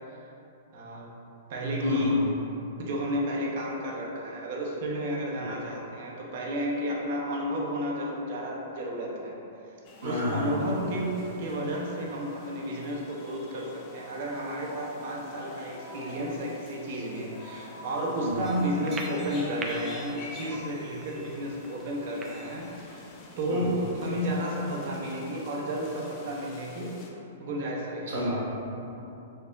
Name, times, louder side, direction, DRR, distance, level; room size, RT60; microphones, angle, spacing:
voice 1, 0.7-1.1 1.5-2.2 2.8-9.4 10.0-27.0 27.4-28.2, equal, 60° right, -2 dB, 0.7 m, -32 dB
voice 2, 1.8-2.2 5.4-5.5 10.0-10.6 18.2-18.5 23.5-23.9 28.1-29.0, left 1 dB, 80° right, -7 dB, 1.2 m, -31 dB
sound 1, 9.8-27.1, left 2 dB, 35° left, 0.5 m, -46 dB
sound 2, 18.4-23.5, right 3 dB, 20° right, 0.3 m, -43 dB
4.5 x 2.9 x 2.4 m, 2.9 s
hypercardioid pair, 135°, 0 cm